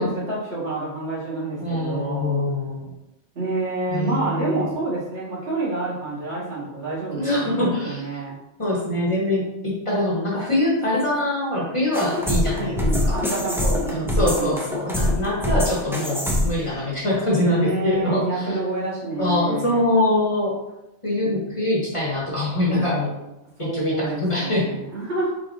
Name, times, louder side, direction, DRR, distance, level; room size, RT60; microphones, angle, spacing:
voice 1, 0.0-2.4 3.4-8.4 12.5-14.6 17.4-19.8 21.2-21.3 23.6-25.3, right 2 dB, 70° right, -7 dB, 1.8 m, -28 dB
voice 2, 1.6-2.9 3.9-4.7 7.2-8.0 8.6-13.2 13.5-18.5 19.2-20.5 21.0-23.2 23.6-24.7, left 1 dB, 30° left, -5 dB, 1.1 m, -24 dB
sound 1, 11.9-16.7, left 1 dB, 5° right, 0.3 m, -24 dB
4.7 x 4.0 x 2.6 m, 0.95 s
omnidirectional pair, 1.2 m